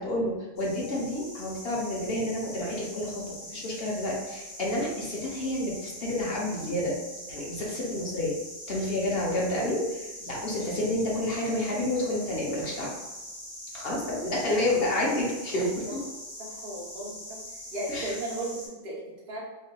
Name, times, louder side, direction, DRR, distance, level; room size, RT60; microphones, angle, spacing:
voice 1, 0.0-3.2 3.5-6.9 7.3-8.3 8.7-12.9 13.7-16.0 17.9-18.1, left 1 dB, 50° left, -4 dB, 0.9 m, -29 dB
sound 1, 0.6-18.7, left 1 dB, 80° left, 1.7 m, -43 dB
voice 2, 16.4-17.4 17.7-19.4, right 1 dB, 45° right, -5 dB, 1.0 m, -36 dB
3.4 x 2.7 x 2.2 m, 1.1 s
omnidirectional pair, 1.4 m